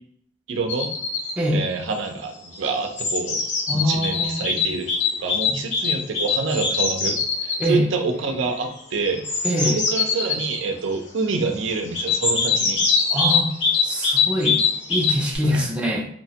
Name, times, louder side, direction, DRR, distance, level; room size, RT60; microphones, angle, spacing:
voice 1, 0.5-0.9 1.5-3.4 3.8-9.3 9.6-12.9 15.4-15.7, right 4 dB, 90° right, 5 dB, 0.5 m, -27 dB
sound 1, 0.7-1.3 2.4-7.7 9.1-10.6 11.9-15.4, left 5 dB, 65° left, 0.6 m, -23 dB
voice 2, 3.7-4.6 5.5-5.6 7.6-7.9 9.4-9.8 13.1-13.5 13.8-14.6 14.9-16.1, equal, 5° right, -1 dB, 0.3 m, -24 dB
2.8 x 2.1 x 2.7 m, 0.67 s
head